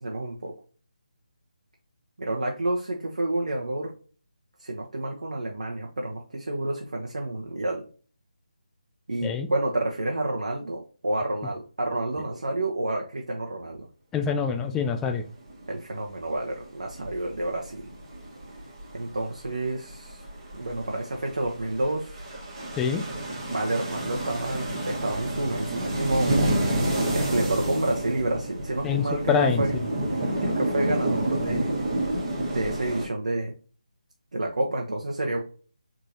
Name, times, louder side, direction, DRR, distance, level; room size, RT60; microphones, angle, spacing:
voice 1, 0.0-0.5 2.2-3.9 4.6-7.9 9.1-13.9 15.7-17.9 18.9-20.2 20.5-22.2 23.5-26.5 27.1-29.8 30.4-31.8 32.5-33.5 34.3-35.4, right 1 dB, 60° right, 0 dB, 1.0 m, -29 dB
voice 2, 14.1-15.2 22.8-23.0 28.8-29.6, left 6 dB, 5° left, 5 dB, 0.3 m, -25 dB
sound 1, 15.3-15.9 16.8-19.2 19.6-33.1, right 1 dB, 25° right, 1.5 m, -29 dB
4.9 x 3.7 x 2.8 m, 0.38 s
figure-of-eight pair, 150°, 4 cm